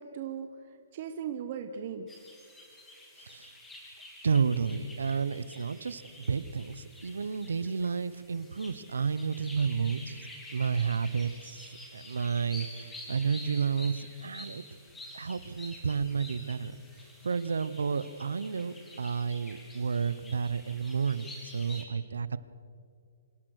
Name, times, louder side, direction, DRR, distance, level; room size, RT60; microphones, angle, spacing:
voice 1, 0.0-2.2, right 7 dB, 40° right, 7 dB, 1.0 m, -38 dB
sound 1, 2.1-21.8, left 1 dB, 5° left, 2.9 m, -49 dB
voice 2, 3.2-3.5 4.2-14.6 15.1-22.4, right 6 dB, 90° right, 16 dB, 0.9 m, -31 dB
26.0 x 16.5 x 6.6 m, 2.3 s
hypercardioid pair, 160°, 0 cm